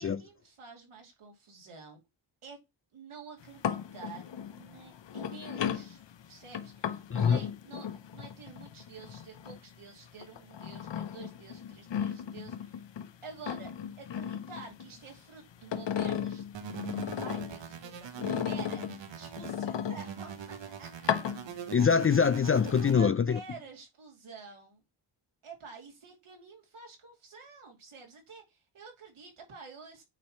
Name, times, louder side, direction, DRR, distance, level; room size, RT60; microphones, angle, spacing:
voice 1, 0.0-2.0 2.4-2.6 2.9-4.2 4.5-6.0 6.3-7.9 8.1-12.8 13.2-13.7 14.0-16.4 17.2-20.9 22.8-24.8 25.4-30.0, right 5 dB, 75° right, 2.7 m, -49 dB
sound 1, 3.4-9.8 10.2-13.1 13.4-15.2 15.5-17.6 18.2-20.4 20.9-21.9 22.3-22.9, left 8 dB, 60° left, 0.8 m, -36 dB
voice 2, 7.1-7.4 21.7-23.4, left 6 dB, 30° left, 0.3 m, -24 dB
sound 2, 16.5-19.6 20.0-23.0, right 8 dB, 60° right, 0.9 m, -43 dB
8.8 x 3.0 x 4.3 m
cardioid pair, 60°, 50 cm